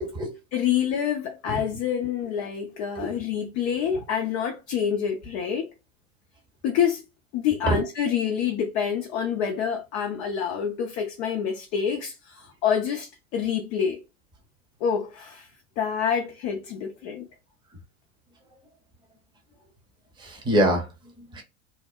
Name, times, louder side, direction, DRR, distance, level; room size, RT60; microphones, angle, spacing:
voice 1, 0.0-0.3 1.5-1.6 3.0-3.1 7.6-7.8 20.2-20.9 21.2-21.4, right 1 dB, 10° right, 0.8 m, -24 dB
voice 2, 0.5-5.7 6.6-7.0 7.3-14.0 14.8-15.5 15.8-17.2, left 8 dB, 35° left, 0.5 m, -27 dB
2.8 x 2.1 x 2.3 m
figure-of-eight pair, 75°, 41 cm